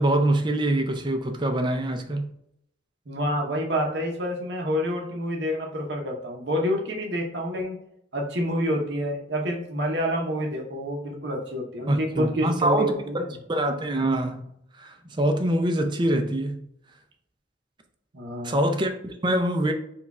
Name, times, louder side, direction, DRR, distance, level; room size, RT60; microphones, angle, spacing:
voice 1, 0.0-2.3 11.9-14.5 14.8-16.6 18.4-19.7, right 1 dB, 25° right, 0.5 m, -24 dB
voice 2, 3.1-7.8 8.1-13.3 18.1-18.6, equal, 60° right, 0.9 m, -28 dB
4.7 x 2.3 x 4.1 m
head